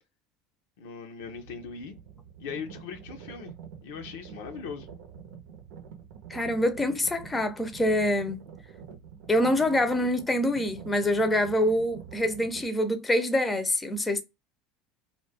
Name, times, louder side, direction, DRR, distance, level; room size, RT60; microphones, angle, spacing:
voice 1, 0.8-2.0 2.4-3.5 3.8-4.9, left 6 dB, 80° left, 0.6 m, -39 dB
sound 1, 1.2-12.7, right 7 dB, 80° right, 0.7 m, -46 dB
voice 2, 6.3-8.4 9.3-14.2, left 1 dB, 15° left, 0.6 m, -25 dB
2.4 x 2.2 x 3.3 m
supercardioid pair, 100°, 0 cm